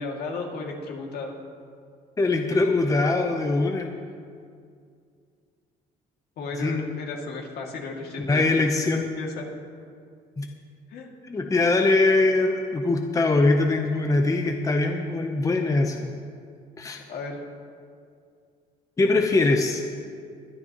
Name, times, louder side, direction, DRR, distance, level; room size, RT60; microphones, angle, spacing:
voice 1, 0.0-1.3 6.4-8.5 8.8-8.9 9.2-9.5 10.9-11.1 17.1-17.4, left 3 dB, 70° left, 0 dB, 2.3 m, -34 dB
voice 2, 2.2-3.9 6.6-6.9 8.2-9.1 10.4-10.5 11.3-16.1 16.8-17.0 19.0-19.8, left 2 dB, 20° left, 4 dB, 0.8 m, -22 dB
21.5 x 10.5 x 3.0 m, 2.2 s
cardioid pair, 110°, 17 cm